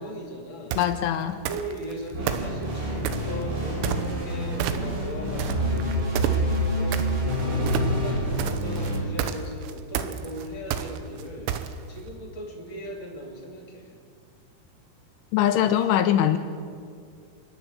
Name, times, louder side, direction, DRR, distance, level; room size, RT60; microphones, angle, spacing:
voice 1, 0.0-0.8 1.3-7.0 7.4-11.5 11.9-14.0, equal, 30° left, 2 dB, 2.4 m, -38 dB
sound 1, 0.7-1.0 1.5-1.9 2.3-3.3 3.8-4.3 4.6-5.1 5.4-12.0, right 10 dB, 85° right, 3.5 m, -30 dB
voice 2, 0.8-1.4 15.3-16.4, left 10 dB, 80° left, 8 dB, 3.0 m, -22 dB
sound 2, 2.1-9.0, equal, 65° right, 9.0 m, -27 dB
30.0 x 10.5 x 8.3 m, 2.2 s
omnidirectional pair, 6.0 m